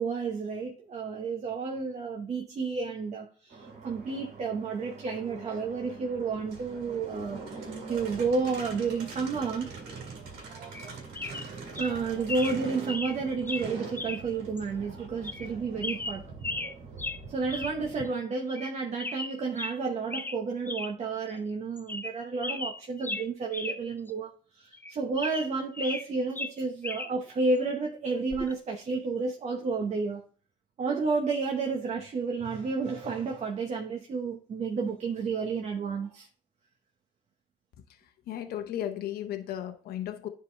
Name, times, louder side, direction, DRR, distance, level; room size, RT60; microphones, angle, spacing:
voice 1, 0.0-9.7 10.5-10.8 11.8-16.2 17.3-30.2 30.8-36.3, right 4 dB, 40° right, 0.9 m, -31 dB
sound 1, 3.5-18.1, right 4 dB, 85° right, 2.0 m, -43 dB
sound 2, 10.7-10.9 11.2-11.5 11.8-11.9 12.3-12.6 12.9-13.2 13.5-13.7 14.0-14.2 14.6-14.7 15.2-15.5 15.8-16.7 17.0-17.2 17.5-17.8 18.1-18.2 18.5-18.7 19.0-19.8 20.1-20.4 20.7-20.9 21.3-21.4 21.8-22.2 22.4-23.8 24.1-24.2 24.7-26.1 26.4-27.1 28.3-28.5, left 2 dB, 10° left, 0.5 m, -36 dB
voice 2, 38.3-40.3, left 11 dB, 70° left, 0.8 m, -35 dB
9.9 x 3.8 x 3.3 m
cardioid pair, 110°, 17 cm